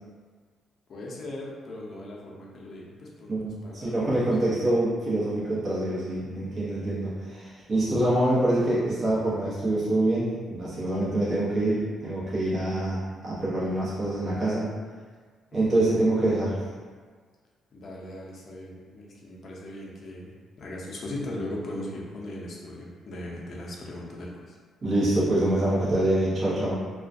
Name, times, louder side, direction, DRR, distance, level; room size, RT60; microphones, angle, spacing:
voice 1, 0.9-4.0 6.1-7.0 15.7-15.9 17.7-20.3 20.6-24.6, left 1 dB, 55° left, -3 dB, 0.5 m, -39 dB
voice 2, 3.3-14.7 15.5-16.6 24.8-26.7, right 1 dB, 45° right, -9 dB, 0.8 m, -25 dB
2.3 x 2.1 x 2.5 m, 1.5 s
cardioid pair, 90°, 0 cm